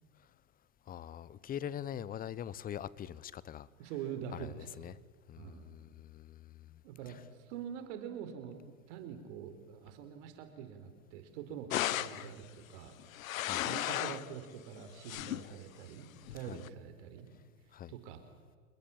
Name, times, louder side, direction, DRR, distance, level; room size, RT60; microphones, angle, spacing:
voice 1, 0.9-3.7 4.3-5.0 5.3-6.8 7.1-7.2 13.4-13.7 16.4-16.6 17.7-17.9, left 10 dB, 20° left, 21 dB, 0.8 m, -43 dB
voice 2, 3.8-4.7 5.4-5.8 6.8-8.6 8.9-13.0 13.6-17.3 17.9-18.2, right 8 dB, 55° right, 8 dB, 4.6 m, -45 dB
sound 1, 11.7-12.3 13.0-14.3 14.8-15.5 16.3-16.7, left 14 dB, 70° left, 1.0 m, -35 dB
28.0 x 21.5 x 8.8 m, 1.5 s
hypercardioid pair, 110°, 42 cm